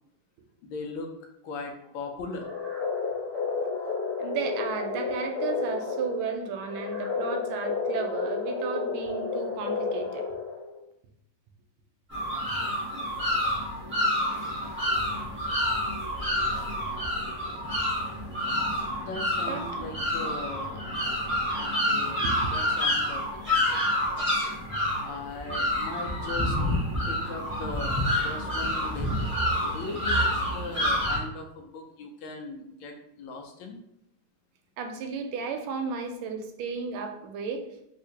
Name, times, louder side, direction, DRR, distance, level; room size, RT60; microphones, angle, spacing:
voice 1, 0.6-1.1 1.4-2.6 3.2-3.3 19.0-21.0 21.5-22.2 22.5-23.2 25.0-26.6 27.1-29.2 29.7-33.8, left 3 dB, 75° left, 3 dB, 1.3 m, -39 dB
sound 1, 2.3-10.8, left 4 dB, 20° left, 0.6 m, -31 dB
voice 2, 4.2-10.2 19.4-19.9 22.2-22.5 34.8-37.6, right 5 dB, 80° right, 5 dB, 1.4 m, -34 dB
sound 2, 12.1-31.2, left 1 dB, 15° right, 0.4 m, -28 dB
3.4 x 2.8 x 2.7 m, 0.79 s
omnidirectional pair, 2.3 m